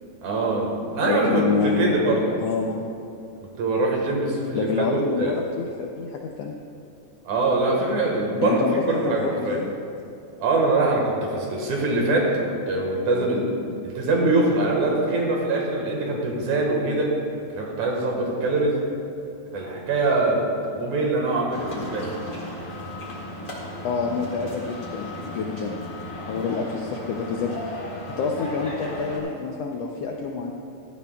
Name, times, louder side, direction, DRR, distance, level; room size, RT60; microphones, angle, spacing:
voice 1, 0.2-2.2 3.4-5.3 7.2-9.6 10.4-12.3 12.7-13.5 13.8-17.1 17.5-18.8 19.5-20.5 20.8-22.1, right 2 dB, 70° right, -1 dB, 2.8 m, -23 dB
voice 2, 1.0-2.8 4.5-6.5 8.4-9.7 23.8-25.8 26.3-27.8 28.2-30.5, left 5 dB, 80° left, 1 dB, 1.4 m, -27 dB
sound 1, 21.5-29.2, left 1 dB, 30° left, 1.7 m, -36 dB
16.0 x 12.5 x 2.3 m, 2.6 s
omnidirectional pair, 3.6 m